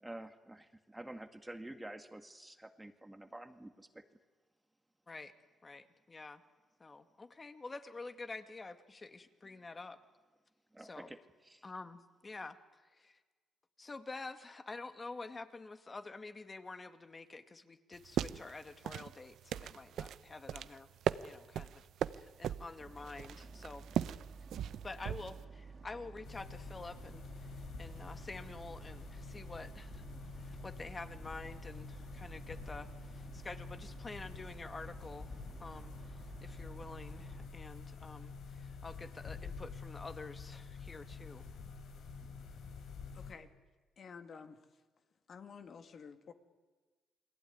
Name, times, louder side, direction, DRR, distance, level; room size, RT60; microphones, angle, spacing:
voice 1, 0.0-4.0 10.7-11.2 11.5-11.7, right 1 dB, 10° right, 8 dB, 1.9 m, -49 dB
voice 2, 5.6-6.4 6.8-10.0 10.8-11.1 11.6-12.6 12.9-13.2 13.8-20.9 21.2-21.8 22.2-23.9 24.8-41.4, left 3 dB, 30° left, 9 dB, 2.2 m, -48 dB
sound 1, 17.9-25.4, right 10 dB, 75° right, 0.8 m, -39 dB
Boat Water vehicle, 22.8-37.5, right 4 dB, 45° right, 3.3 m, -52 dB
sound 2, 26.2-43.3, left 5 dB, 75° left, 4.5 m, -48 dB
voice 3, 43.1-43.5 44.0-44.6 45.3-46.3, left 6 dB, 50° left, 7 dB, 2.4 m, -51 dB
29.0 x 21.5 x 9.6 m, 1.4 s
cardioid pair, 90°, 0 cm